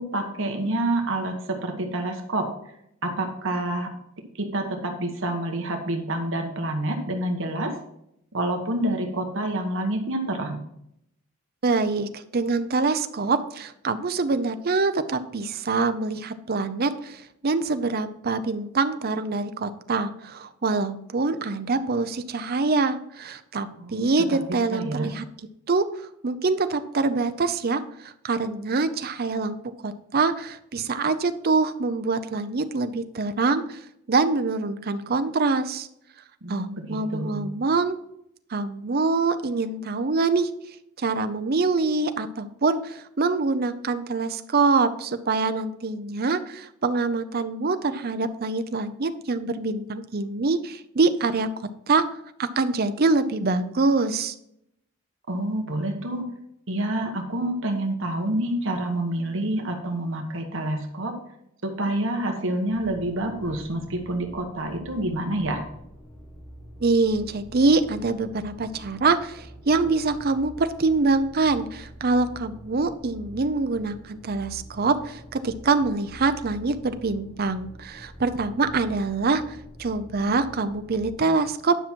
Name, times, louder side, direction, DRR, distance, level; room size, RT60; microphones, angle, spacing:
voice 1, 0.0-2.5 3.0-3.9 4.4-7.7 8.3-10.6 23.8-25.1 36.4-37.4 55.3-56.3 56.7-61.1 61.6-65.6, right 1 dB, 60° right, 3 dB, 1.3 m, -28 dB
voice 2, 11.6-25.2 25.7-25.9 26.2-33.8 34.1-35.9 36.5-38.0 38.5-40.5 41.0-51.5 51.9-52.0 52.4-54.3 66.8-81.8, right 3 dB, 45° right, 10 dB, 0.6 m, -25 dB
sound 1, 62.7-81.2, equal, 20° left, 1.3 m, -45 dB
10.0 x 5.8 x 4.5 m, 0.76 s
head